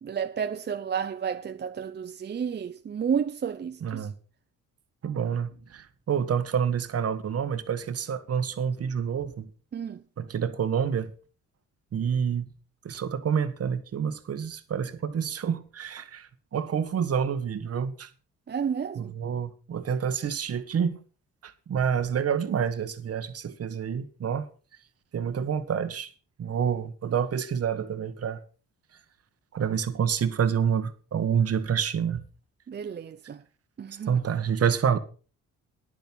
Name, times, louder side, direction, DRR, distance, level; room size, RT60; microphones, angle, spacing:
voice 1, 0.0-4.1 9.7-10.0 18.5-19.1 32.7-33.4 33.8-34.2, right 7 dB, 35° right, 0.7 m, -31 dB
voice 2, 3.8-4.1 5.0-9.5 10.2-11.1 11.9-12.5 12.8-18.1 19.0-21.0 21.4-24.5 25.1-26.1 26.4-28.4 29.5-32.2 34.1-35.0, right 7 dB, 50° right, 1.5 m, -28 dB
11.0 x 10.5 x 5.5 m
cardioid pair, 90°, 30 cm